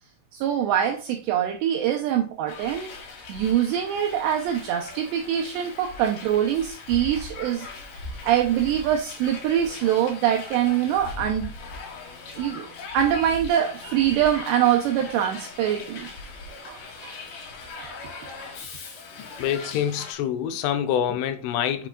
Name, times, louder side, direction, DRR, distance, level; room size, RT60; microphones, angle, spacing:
voice 1, 0.3-2.9 3.3-7.7 8.2-11.5 12.4-12.7 12.9-16.1 16.6-17.1 17.8-18.3, right 10 dB, 90° right, 2.5 m, -24 dB
Hiss, 2.5-20.1, left 3 dB, 60° left, 2.8 m, -40 dB
voice 2, 19.2-21.9, left 9 dB, 85° left, 3.1 m, -26 dB
8.1 x 6.0 x 2.3 m
omnidirectional pair, 5.7 m